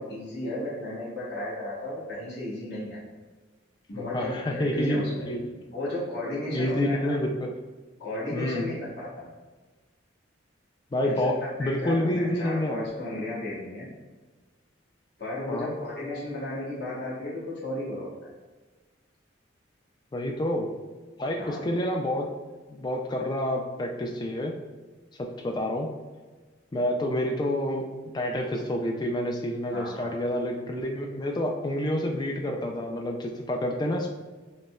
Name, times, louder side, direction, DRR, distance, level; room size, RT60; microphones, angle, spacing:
voice 1, 0.0-3.0 3.9-7.1 8.0-9.2 11.0-11.3 11.6-13.9 15.2-18.3 21.4-21.6 29.7-30.1, left 1 dB, 55° left, -9 dB, 1.2 m, -34 dB
voice 2, 3.9-5.4 6.5-7.5 8.3-8.7 10.9-12.9 15.5-15.7 20.1-20.7 21.2-22.3 22.7-24.6 25.2-25.9 26.7-27.9 28.1-34.1, left 1 dB, 20° left, 2 dB, 0.3 m, -28 dB
5.2 x 2.1 x 2.3 m, 1.3 s
head